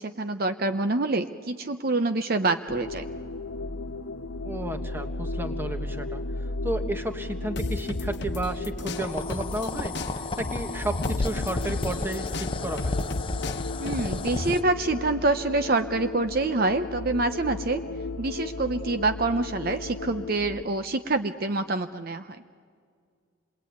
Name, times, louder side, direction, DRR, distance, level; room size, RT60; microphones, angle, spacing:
voice 1, 0.0-3.1 13.8-17.8 18.2-22.4, right 2 dB, 45° right, 9 dB, 0.7 m, -26 dB
sound 1, 2.7-20.6, left 2 dB, 80° left, 1.2 m, -35 dB
voice 2, 4.4-6.2 6.6-13.0, right 1 dB, 10° right, 5 dB, 1.5 m, -33 dB
sound 2, 7.6-9.7 9.9-14.5, left 2 dB, 55° left, 1.1 m, -33 dB
sound 3, 8.9-14.6, left 2 dB, 25° left, 0.7 m, -33 dB
27.5 x 21.0 x 9.4 m, 2.1 s
head